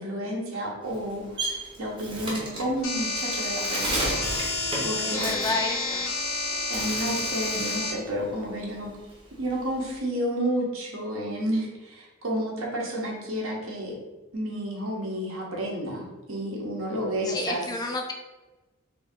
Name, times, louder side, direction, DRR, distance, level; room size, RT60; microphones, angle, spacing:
voice 1, 0.0-4.5 4.8-5.4 6.7-8.9 9.4-13.9 14.3-17.6, right 1 dB, 70° right, -2 dB, 0.9 m, -31 dB
Bird, 0.8-6.3 6.6-7.9 8.3-10.0, right 1 dB, 25° right, 0.7 m, -34 dB
sound 1, 2.8-7.9, left 3 dB, 70° left, 0.7 m, -29 dB
voice 2, 5.0-6.0 17.2-18.1, left 3 dB, 20° left, 3 dB, 0.3 m, -30 dB
3.0 x 2.7 x 3.6 m, 1.1 s
head